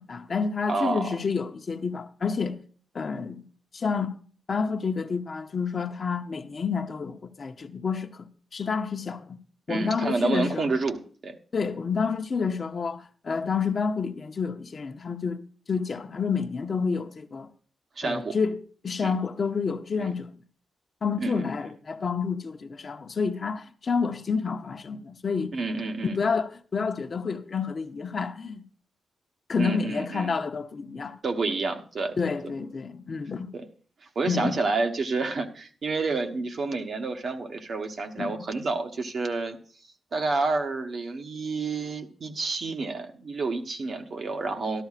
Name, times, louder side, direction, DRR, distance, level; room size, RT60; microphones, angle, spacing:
voice 1, 0.0-2.6 2.9-3.4 3.7-4.2 4.5-9.4 9.7-10.6 11.5-15.4 15.7-17.5 18.0-20.3 21.0-25.6 26.0-28.6 29.5-31.2 32.2-33.5 34.3-34.6 38.2-38.5, left 5 dB, 40° left, 0.7 m, -29 dB
voice 2, 0.7-1.1 9.7-11.3 18.0-18.4 19.0-19.1 20.0-20.1 21.2-21.4 25.5-26.2 29.6-30.3 31.2-32.2 32.4-32.5 33.5-33.6 34.1-39.6 40.1-44.8, right 3 dB, 50° right, 1.1 m, -29 dB
13.0 x 12.5 x 2.4 m
wide cardioid pair, 135°, 0 cm